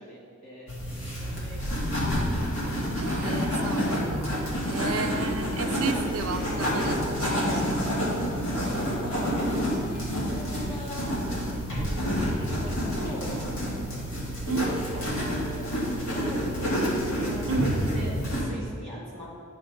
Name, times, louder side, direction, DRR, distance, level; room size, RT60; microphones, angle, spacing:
voice 1, 0.0-1.7 2.3-3.1 4.5-4.9 8.6-12.1 12.4-14.2 14.5-17.0 17.3-17.7 17.9-19.3, right 1 dB, 25° left, -5 dB, 1.5 m, -41 dB
sound 1, 0.7-18.4, equal, 65° left, 1.8 m, -28 dB
voice 2, 3.0-8.1 14.5-14.7 17.5-17.7, right 4 dB, 85° right, 7 dB, 0.5 m, -33 dB
9.6 x 3.4 x 5.1 m, 2.2 s
head